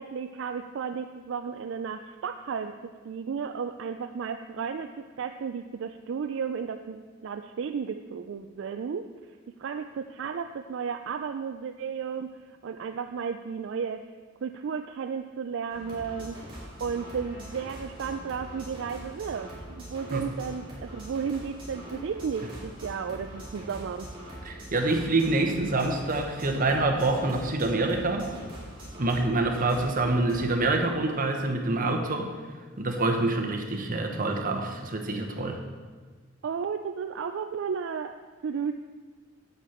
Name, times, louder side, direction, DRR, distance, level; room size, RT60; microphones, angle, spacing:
voice 1, 0.0-9.1 9.6-14.0 14.4-16.4 16.8-24.1 36.4-38.2 38.4-38.7, right 6 dB, 65° right, 7 dB, 0.4 m, -33 dB
sound 1, 15.7-30.7, equal, 25° right, 3.3 m, -43 dB
voice 2, 24.4-28.3 29.0-32.3 32.8-35.6, right 2 dB, 45° right, 4 dB, 1.1 m, -26 dB
9.9 x 8.0 x 4.4 m, 1.4 s
head